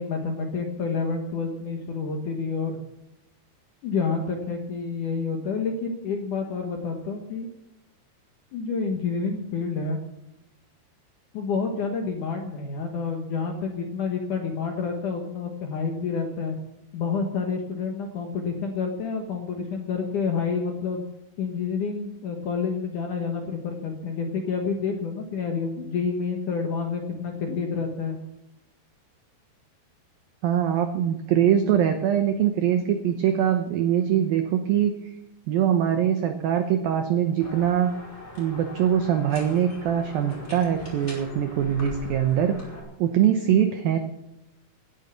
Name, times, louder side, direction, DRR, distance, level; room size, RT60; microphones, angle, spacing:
voice 1, 0.0-2.8 3.8-7.5 8.5-10.0 11.3-16.6 16.9-21.0 21.4-28.2, left 5 dB, 65° left, 3 dB, 2.0 m, -29 dB
voice 2, 30.4-35.1 35.5-37.9 38.4-42.6 43.0-44.0, right 9 dB, 80° right, 7 dB, 2.1 m, -23 dB
sound 1, 37.4-42.8, left 1 dB, 15° left, 4.9 m, -41 dB
18.0 x 9.3 x 7.1 m, 0.88 s
omnidirectional pair, 5.5 m